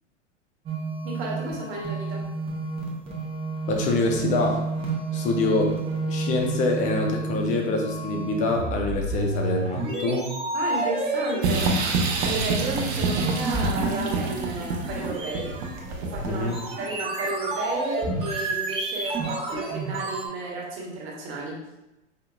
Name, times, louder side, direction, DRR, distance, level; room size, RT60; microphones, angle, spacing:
sound 1, 0.7-20.3, right 2 dB, 15° right, 0.8 m, -30 dB
voice 1, 1.0-2.2 10.5-15.5 16.0-16.5 16.8-21.6, right 2 dB, 35° right, -2 dB, 1.2 m, -33 dB
voice 2, 3.7-4.6 5.1-5.7 6.1-10.3 16.2-16.6, left 2 dB, 20° left, 2 dB, 0.5 m, -25 dB
sound 2, 11.4-16.6, right 4 dB, 60° right, 0.8 m, -27 dB
5.0 x 2.8 x 2.2 m, 0.94 s
figure-of-eight pair, 100°, 37 cm